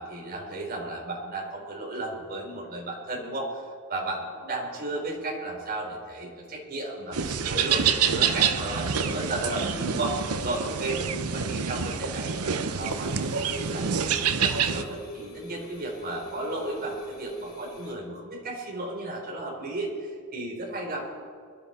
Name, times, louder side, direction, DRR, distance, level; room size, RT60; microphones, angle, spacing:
voice 1, 0.0-13.9 14.4-21.2, right 2 dB, 45° right, -2 dB, 3.8 m, -34 dB
sound 1, 7.1-14.8, right 6 dB, 85° right, 0.8 m, -27 dB
sound 2, 12.8-17.9, equal, 45° left, 3.8 m, -42 dB
23.0 x 12.5 x 4.3 m, 2.1 s
head